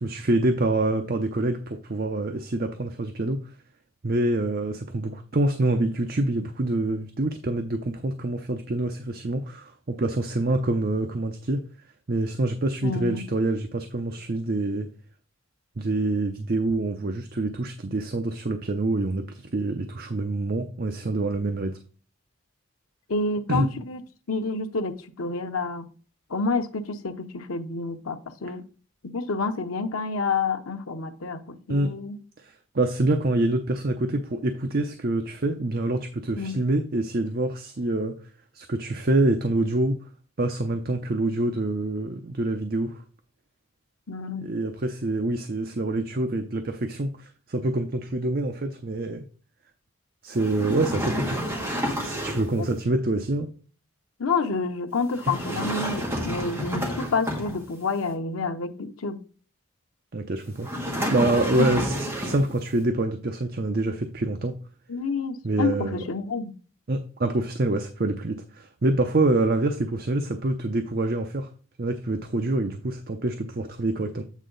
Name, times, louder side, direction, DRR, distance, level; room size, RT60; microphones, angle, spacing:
voice 1, 0.0-3.4 4.0-11.6 12.1-14.9 15.8-21.7 23.5-23.7 31.7-31.9 32.7-38.2 38.5-39.9 40.4-43.0 44.4-49.2 50.2-51.4 52.0-53.5 55.3-55.4 60.1-60.7 61.1-64.6 65.4-66.0 66.9-71.5 71.8-74.2, right 2 dB, 45° right, 0.6 m, -26 dB
voice 2, 12.8-13.2 23.1-24.0 24.3-25.9 26.3-28.6 29.0-32.2 36.4-36.6 44.1-44.4 52.6-52.7 54.2-59.2 61.6-61.7 64.9-66.6, left 4 dB, 85° left, 0.8 m, -29 dB
sound 1, 50.3-52.6 55.1-57.9 60.6-62.6, equal, 10° right, 1.7 m, -30 dB
8.3 x 4.5 x 3.9 m
head